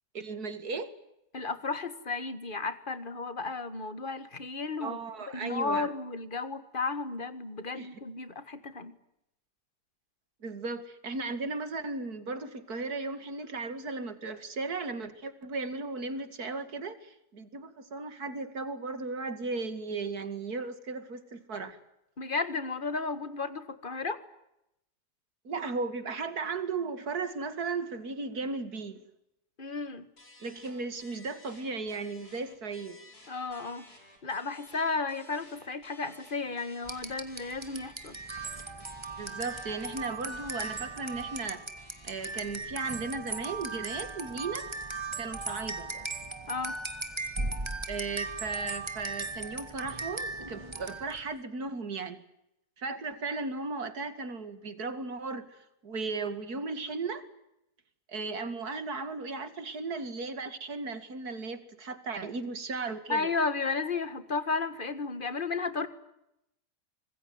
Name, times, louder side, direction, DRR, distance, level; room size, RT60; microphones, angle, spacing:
voice 1, 0.1-0.9 4.8-5.9 7.7-7.9 10.4-21.8 25.4-29.0 30.4-33.0 39.2-41.6 42.0-44.7 45.2-45.9 47.9-52.2 52.8-57.2 58.1-63.3, right 3 dB, 65° right, 11 dB, 2.7 m, -36 dB
voice 2, 1.3-5.0 5.3-9.0 22.2-24.2 29.6-30.1 33.3-33.8 34.2-38.2 46.5-46.8 63.1-65.9, left 4 dB, 30° left, 13 dB, 1.8 m, -33 dB
sound 1, 30.2-42.6, left 1 dB, 65° left, 6.1 m, -55 dB
sound 2, 36.8-51.3, right 3 dB, 15° right, 2.0 m, -38 dB
26.0 x 20.5 x 9.6 m, 0.84 s
omnidirectional pair, 1.7 m